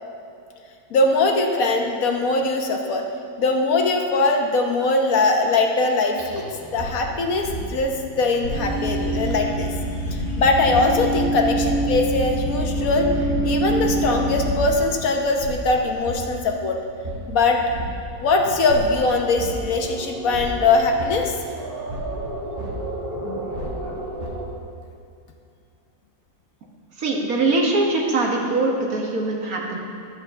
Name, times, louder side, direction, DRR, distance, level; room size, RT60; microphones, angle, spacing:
voice 1, 0.9-3.0 3.4-9.7 10.1-13.1 13.4-16.8 17.3-17.6 18.2-21.3, left 3 dB, 70° left, 2 dB, 1.4 m, -21 dB
sound 1, 6.2-24.4, right 1 dB, 40° right, 1.7 m, -33 dB
sound 2, 8.5-14.7, right 1 dB, 55° left, 2.5 m, -25 dB
voice 2, 27.0-29.8, right 2 dB, 75° right, -1 dB, 1.8 m, -22 dB
11.0 x 5.5 x 6.8 m, 2.5 s
omnidirectional pair, 1.6 m